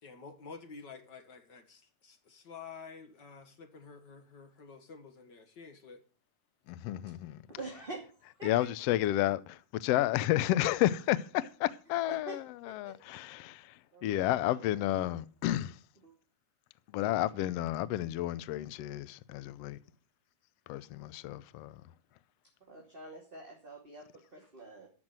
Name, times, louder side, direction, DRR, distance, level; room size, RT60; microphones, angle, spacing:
voice 1, 0.0-6.0, left 5 dB, 50° left, 1.4 m, -50 dB
voice 2, 6.7-7.4 8.4-13.7 14.0-15.7 16.9-19.8 20.7-21.7, left 14 dB, 90° left, 1.4 m, -31 dB
voice 3, 7.5-8.9 12.1-12.4 12.7-13.2 13.9-14.6 16.0-16.1 22.7-24.9, right 2 dB, 20° right, 2.5 m, -46 dB
14.0 x 6.3 x 8.9 m
omnidirectional pair, 3.8 m